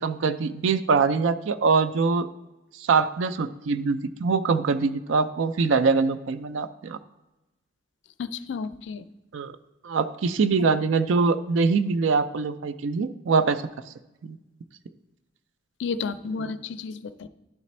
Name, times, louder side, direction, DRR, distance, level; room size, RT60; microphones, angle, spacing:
voice 1, 0.0-2.3 2.8-7.0 9.3-9.6 9.8-13.6 14.2-14.4 16.4-16.5, right 4 dB, 85° right, 13 dB, 0.4 m, -23 dB
voice 2, 8.2-9.1 15.8-17.3, left 5 dB, 65° left, 13 dB, 0.4 m, -32 dB
11.0 x 4.0 x 4.3 m, 1.0 s
head